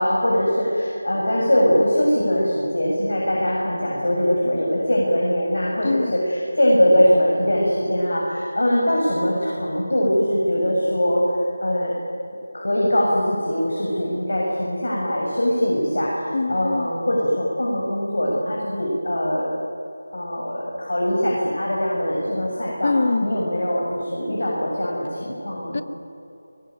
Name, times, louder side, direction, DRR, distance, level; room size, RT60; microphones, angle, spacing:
voice 1, 0.0-11.3 11.6-12.0 12.5-19.5 20.1-22.9 23.2-25.8, equal, 80° left, -3 dB, 7.3 m, -22 dB
voice 2, 16.3-16.9 22.8-23.3 25.7-25.8, left 3 dB, 35° left, 13 dB, 0.9 m, -23 dB
22.0 x 22.0 x 9.4 m, 3.0 s
figure-of-eight pair, 175°, 0 cm